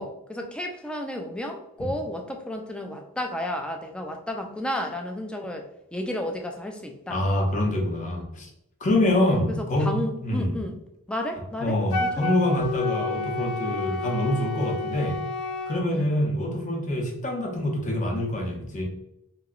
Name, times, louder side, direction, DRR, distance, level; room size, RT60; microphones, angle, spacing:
voice 1, 0.0-7.2 9.2-10.8 11.1-12.3 15.9-16.1, left 1 dB, 5° left, 3 dB, 0.3 m, -32 dB
voice 2, 7.1-8.5 8.8-9.9 10.2-10.6 11.6-15.2 15.7-18.8, left 1 dB, 35° left, 0 dB, 0.7 m, -25 dB
Wind instrument woodwind instrument, 11.9-15.8, left 3 dB, 85° left, 0.5 m, -30 dB
3.0 x 2.8 x 2.4 m, 0.84 s
head